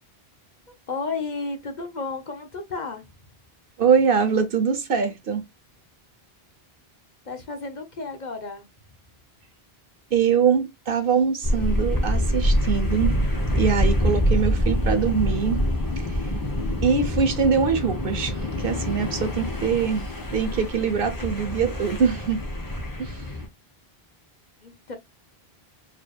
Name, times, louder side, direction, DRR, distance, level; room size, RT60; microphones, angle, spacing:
voice 1, 0.9-3.1 7.2-8.7 24.6-25.0, left 4 dB, 45° left, 1.0 m, -32 dB
voice 2, 3.8-5.4 10.1-13.1 13.6-15.6 16.0-16.2 16.8-22.4 23.0-23.2, right 6 dB, 60° right, 1.1 m, -23 dB
sound 1, 11.4-23.5, equal, 20° left, 1.0 m, -25 dB
4.4 x 3.3 x 2.3 m
omnidirectional pair, 1.0 m